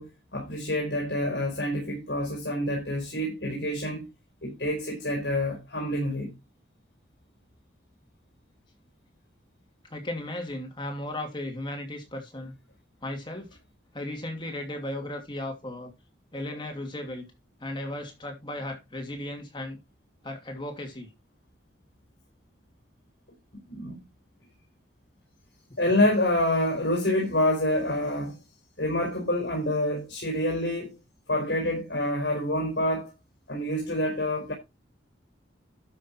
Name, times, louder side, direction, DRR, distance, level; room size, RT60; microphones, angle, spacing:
voice 1, 0.0-4.1 4.4-6.3 23.5-24.0 25.8-28.4 28.8-31.0 31.3-33.1 33.5-34.5, left 1 dB, 65° left, 4.7 m, -27 dB
voice 2, 9.9-12.5 13.0-13.5 13.9-15.9 16.3-17.3 17.6-19.8 20.2-21.1, left 1 dB, 25° left, 2.6 m, -35 dB
12.5 x 6.5 x 4.5 m
head